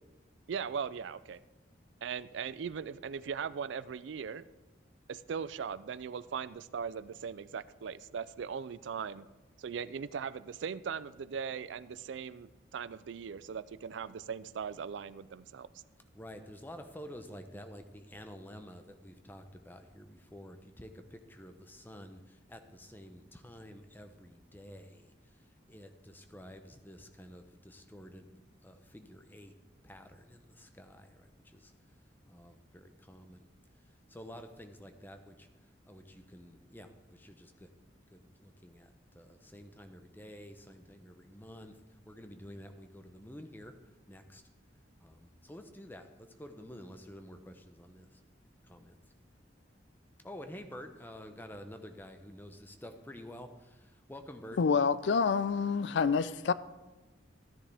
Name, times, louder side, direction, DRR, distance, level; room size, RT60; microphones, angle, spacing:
voice 1, 0.5-1.4 2.0-4.5 5.1-9.3 9.6-15.7, right 6 dB, 75° right, 0.4 m, -39 dB
voice 2, 16.1-25.1 25.7-29.5 29.8-31.7 32.3-33.5 34.1-35.5 35.9-37.7 38.1-41.7 42.1-43.7 44.1-44.4 45.0-46.1 46.4-48.2 48.7-49.0 50.2-54.6, equal, 10° left, 0.7 m, -50 dB
voice 3, 54.6-56.5, left 5 dB, 70° left, 0.4 m, -27 dB
14.0 x 10.0 x 3.5 m
head